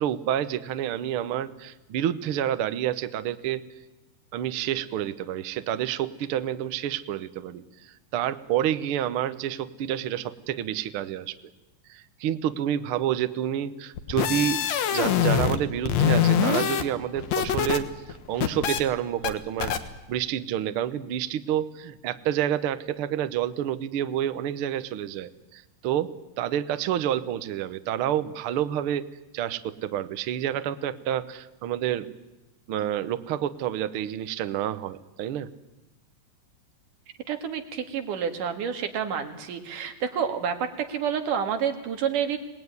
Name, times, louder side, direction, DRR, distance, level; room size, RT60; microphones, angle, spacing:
voice 1, 0.0-3.7 4.3-11.4 11.9-14.6 14.9-17.9 18.3-19.7 20.1-29.1 29.3-32.1 32.7-35.5, right 11 dB, 65° right, 12 dB, 1.4 m, -29 dB
sound 1, 14.0-15.6 15.9-17.8 18.1-18.8 19.2-19.3 19.6-19.8, left 8 dB, 65° left, 2.4 m, -24 dB
voice 2, 37.3-42.4, right 7 dB, 85° right, 6 dB, 3.5 m, -29 dB
26.5 x 19.0 x 9.6 m, 1.0 s
omnidirectional pair, 3.6 m